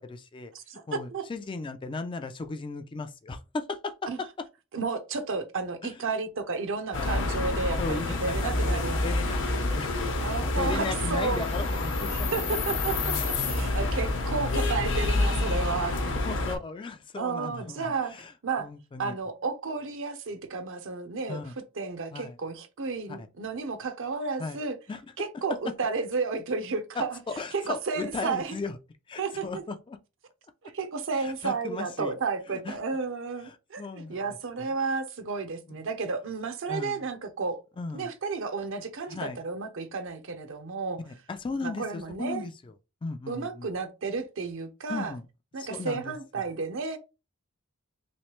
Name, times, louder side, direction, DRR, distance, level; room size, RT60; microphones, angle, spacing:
voice 1, 0.0-0.5 0.9-4.3 5.8-6.0 6.9-7.2 7.8-10.0 10.4-12.3 15.0-15.2 16.2-18.3 18.6-19.2 21.3-21.5 22.1-22.4 23.1-23.3 24.4-24.6 24.9-25.0 27.0-28.8 29.1-30.0 31.2-32.1 32.5-32.8 33.5-34.2 34.6-34.7 35.7-35.8 36.7-37.0 37.8-38.1 39.1-39.4 41.0-42.7 43.0-43.7 44.9-45.2 45.6-46.1, left 3 dB, 25° left, 0.3 m, -36 dB
voice 2, 0.5-1.2 4.1-4.2 4.7-9.0 10.2-11.5 12.1-16.1 17.2-18.1 18.4-18.7 19.0-21.4 21.8-24.8 25.2-27.2 27.5-28.6 29.2-29.4 30.7-37.6 37.9-41.0 41.6-42.5 43.3-45.1 45.5-47.0, right 4 dB, 65° right, 0.7 m, -32 dB
sound 1, 6.9-16.6, left 2 dB, 60° left, 0.8 m, -28 dB
3.1 x 3.1 x 3.0 m
head